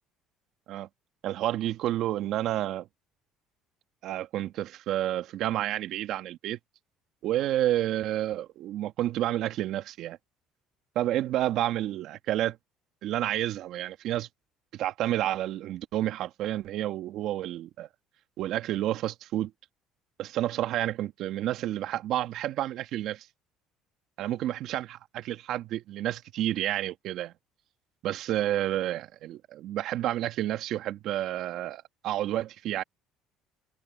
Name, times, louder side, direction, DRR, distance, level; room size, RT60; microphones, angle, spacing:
voice 1, 1.2-2.9 4.0-6.6 7.2-10.2 11.0-12.6 13.0-14.3 14.7-17.9 18.4-19.5 20.2-23.3 24.2-27.3 28.0-32.8, right 13 dB, 65° right, 1.8 m, -30 dB
supercardioid pair, 90°, 0 cm